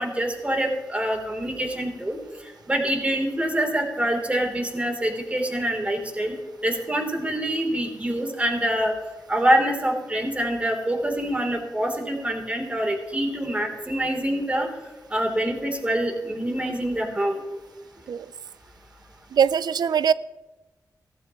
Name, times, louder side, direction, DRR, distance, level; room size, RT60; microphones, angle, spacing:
voice 1, 0.0-2.2 2.7-6.3 6.6-8.9 9.3-14.7 15.1-17.4, right 1 dB, 20° right, 2 dB, 3.2 m, -25 dB
voice 2, 19.3-20.1, right 7 dB, 75° right, 17 dB, 0.4 m, -21 dB
15.5 x 15.0 x 3.0 m, 1.1 s
wide cardioid pair, 85°, 7 cm